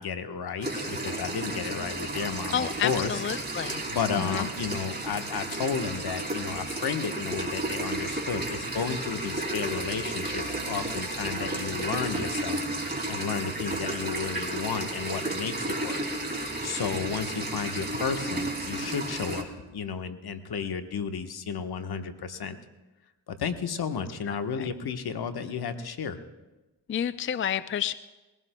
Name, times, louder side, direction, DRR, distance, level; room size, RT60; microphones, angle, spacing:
voice 1, 0.0-3.2 3.9-16.0 16.6-19.5 19.7-22.6 23.3-26.2, left 6 dB, 65° left, 8 dB, 1.2 m, -32 dB
sound 1, 0.6-19.4, right 2 dB, 25° right, 2.7 m, -33 dB
voice 2, 2.5-3.8 4.2-4.5 24.3-24.7 26.9-27.9, left 9 dB, 30° left, 14 dB, 0.4 m, -30 dB
21.0 x 16.0 x 2.2 m, 1.1 s
supercardioid pair, 45°, 41 cm